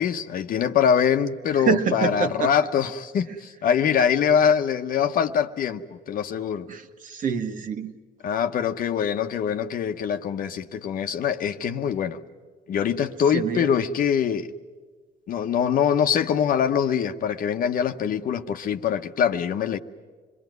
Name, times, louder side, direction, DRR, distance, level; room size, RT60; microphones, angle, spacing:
voice 1, 0.0-6.7 8.2-12.2 12.7-14.5 15.3-19.8, left 8 dB, 55° left, 1.0 m, -23 dB
voice 2, 1.5-2.5 6.7-7.9 13.3-13.7, right 5 dB, 50° right, 1.6 m, -26 dB
27.0 x 21.0 x 9.4 m
cardioid pair, 110°, 17 cm